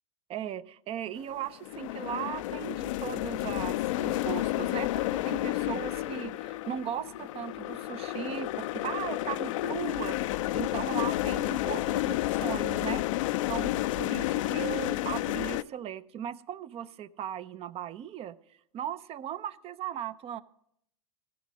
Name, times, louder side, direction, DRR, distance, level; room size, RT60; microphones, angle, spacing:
voice 1, 0.3-13.1 13.5-18.4 18.7-20.4, right 10 dB, 35° right, 16 dB, 0.6 m, -38 dB
sound 1, 1.2-15.6, left 16 dB, 60° left, 0.5 m, -31 dB
16.5 x 7.4 x 6.2 m, 0.72 s
hypercardioid pair, 95°, 18 cm